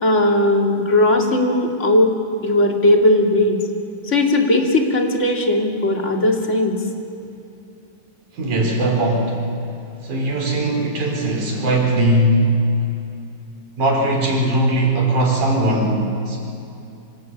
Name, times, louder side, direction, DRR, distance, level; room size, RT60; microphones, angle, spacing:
voice 1, 0.0-2.1 2.4-3.6 4.1-6.8, left 1 dB, 25° left, 1 dB, 2.3 m, -17 dB
voice 2, 8.3-9.4 10.0-12.4 13.8-16.4, right 1 dB, 70° right, 0 dB, 5.4 m, -19 dB
26.0 x 18.5 x 8.7 m, 2.7 s
omnidirectional pair, 3.6 m